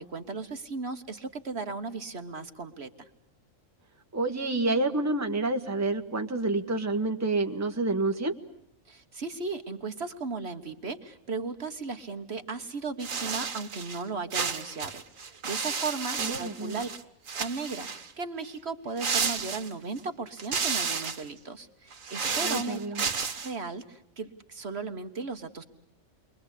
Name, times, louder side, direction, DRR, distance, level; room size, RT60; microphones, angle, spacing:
voice 1, 0.0-3.1 8.9-16.9 17.3-22.8 23.2-25.6, right 4 dB, 55° right, 7 dB, 1.6 m, -36 dB
voice 2, 4.1-8.3 16.2-16.8 22.4-23.0, right 2 dB, 15° right, 5 dB, 1.3 m, -28 dB
sound 1, 13.0-14.0 14.3-17.0 17.3-18.1 19.0-20.0 20.4-21.3 21.9-23.5, right 5 dB, 85° right, 1.8 m, -32 dB
29.5 x 23.0 x 8.2 m, 0.78 s
omnidirectional pair, 1.3 m